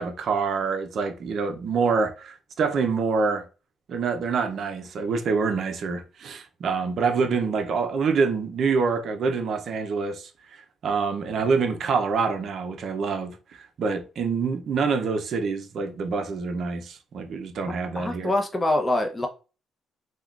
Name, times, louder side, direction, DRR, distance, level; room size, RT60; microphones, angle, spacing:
voice 1, 0.0-3.5 3.9-10.3 10.8-18.3, right 5 dB, 60° right, 0.5 m, -26 dB
voice 2, 18.0-19.3, left 1 dB, 15° left, 0.6 m, -24 dB
3.5 x 2.2 x 2.3 m
cardioid pair, 90°, 0 cm